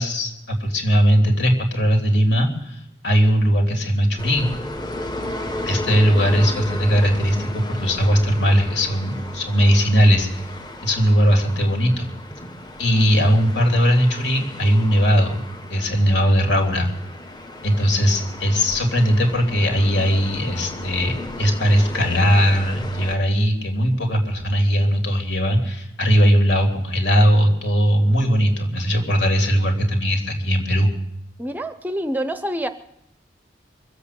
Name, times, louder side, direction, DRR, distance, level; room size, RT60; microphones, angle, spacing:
voice 1, 0.0-4.6 5.7-10.3 10.8-12.1 12.8-15.4 15.7-16.9 17.6-30.9, equal, 70° left, 1 dB, 3.2 m, -19 dB
sound 1, 4.2-23.2, left 1 dB, 20° left, 1.2 m, -34 dB
voice 2, 31.4-32.7, right 1 dB, 10° right, 9 dB, 0.6 m, -26 dB
23.5 x 8.1 x 6.8 m, 0.81 s
head